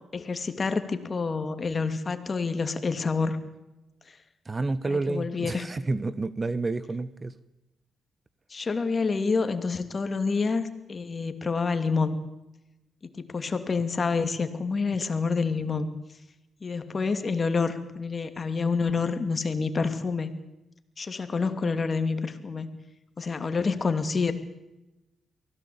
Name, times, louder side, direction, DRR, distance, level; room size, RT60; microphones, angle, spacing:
voice 1, 0.0-3.4 4.9-5.7 8.5-12.2 13.1-15.9 16.6-20.3 21.0-22.7 23.2-24.3, left 4 dB, 40° left, 9 dB, 2.7 m, -28 dB
voice 2, 4.5-7.3, right 3 dB, 30° right, 16 dB, 1.1 m, -29 dB
23.5 x 16.5 x 8.7 m, 0.97 s
supercardioid pair, 65°, 0 cm